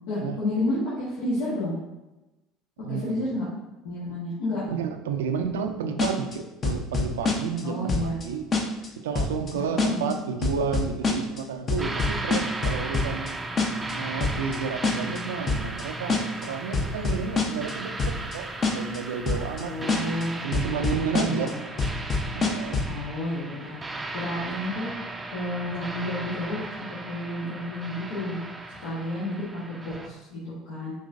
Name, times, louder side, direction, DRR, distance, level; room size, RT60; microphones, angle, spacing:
voice 1, 0.1-1.8 2.9-3.4 3.8-4.6 7.6-8.2 9.5-10.1 19.6-20.5 21.1-21.5 22.9-23.7 24.1-24.9 25.3-28.4 28.8-30.9, left 1 dB, 80° left, -9 dB, 1.2 m, -30 dB
voice 2, 2.8-3.3 4.1-4.2 4.7-8.5 9.0-13.4 13.9-20.1 20.4-21.6 22.3-22.9, right 6 dB, 85° right, 6 dB, 0.3 m, -31 dB
sound 1, 6.0-6.4 6.6-7.6 7.9-8.2 8.5-8.9 9.2-9.5 9.8-10.1 10.4-11.4 11.7-13.3 13.6-13.9 14.2-14.6 14.8-15.2 15.5-15.8 16.1-16.5 16.7-17.7 18.0-18.4 18.6-19.0 19.3-19.6 19.9-20.2 20.5-21.5 21.8-23.0, left 4 dB, 35° left, 0.8 m, -25 dB
sound 2, 11.8-30.1, right 2 dB, 20° right, 0.4 m, -36 dB
5.2 x 3.0 x 2.6 m, 1.0 s
hypercardioid pair, 75°, 0 cm